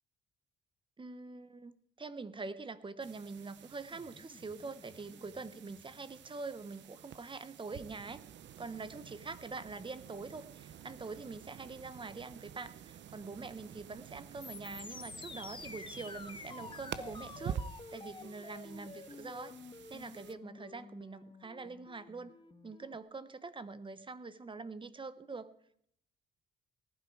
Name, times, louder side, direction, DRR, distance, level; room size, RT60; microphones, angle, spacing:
voice 1, 1.0-8.2 8.6-17.6 17.9-19.6 19.9-22.3 22.6-25.5, right 4 dB, 25° right, 14 dB, 1.1 m, -44 dB
sound 1, 3.0-20.3, right 9 dB, 65° right, 0.8 m, -49 dB
sound 2, 3.9-6.2 14.4-23.0, left 4 dB, 25° left, 1.3 m, -50 dB
19.0 x 12.0 x 4.8 m, 0.68 s
cardioid pair, 90°, 20 cm